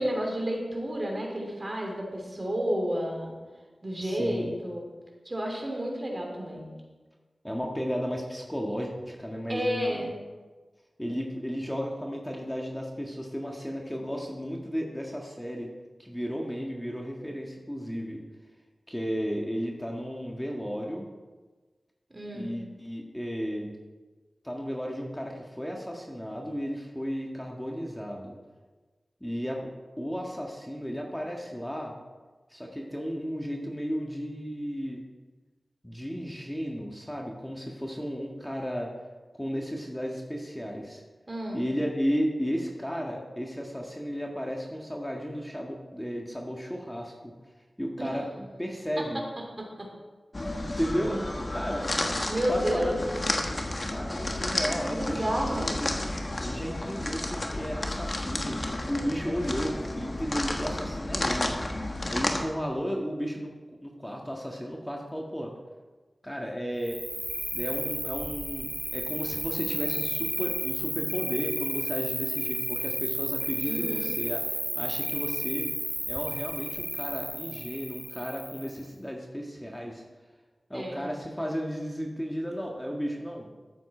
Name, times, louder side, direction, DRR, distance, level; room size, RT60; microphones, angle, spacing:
voice 1, 0.0-3.3 3.8-4.9 5.2-6.7 9.5-10.1 22.1-22.6 41.3-41.7 48.0-48.2 49.0-49.1 49.6-49.9 52.3-53.0 54.7-55.7 73.7-74.1 79.7-79.9 80.7-81.1, equal, 40° right, 0 dB, 3.1 m, -31 dB
voice 2, 4.0-4.5 7.4-10.1 11.0-15.7 16.0-18.2 18.9-21.0 22.3-23.7 24.4-28.3 29.2-29.6 30.0-32.0 32.5-35.0 35.8-38.9 39.3-41.0 41.5-47.3 47.8-49.2 50.8-51.2 51.5-51.9 52.5-53.0 53.5-53.6 53.9-55.2 55.5-55.9 56.4-61.5 62.1-65.5 66.2-67.0 67.5-75.6 76.1-80.0 80.7-83.5, equal, 10° left, 0 dB, 1.7 m, -34 dB
sound 1, 50.3-62.4, left 1 dB, 45° left, 1.4 m, -32 dB
Cricket, 66.8-78.8, right 1 dB, 20° right, 0.7 m, -32 dB
13.5 x 7.7 x 4.4 m, 1.3 s
cardioid pair, 45°, 0 cm